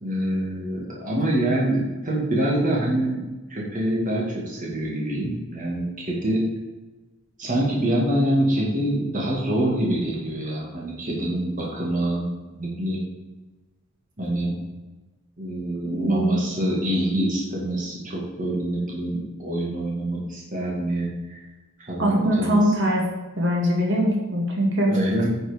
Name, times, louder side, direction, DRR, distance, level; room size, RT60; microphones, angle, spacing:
voice 1, 0.0-6.4 7.4-13.0 14.2-14.6 15.4-21.4 21.8-22.7 24.9-25.3, right 1 dB, 40° right, -3 dB, 2.2 m, -25 dB
voice 2, 15.8-16.4 22.0-23.0 23.4-24.9, equal, 60° right, -1 dB, 2.3 m, -22 dB
9.6 x 6.1 x 5.2 m, 1.1 s
head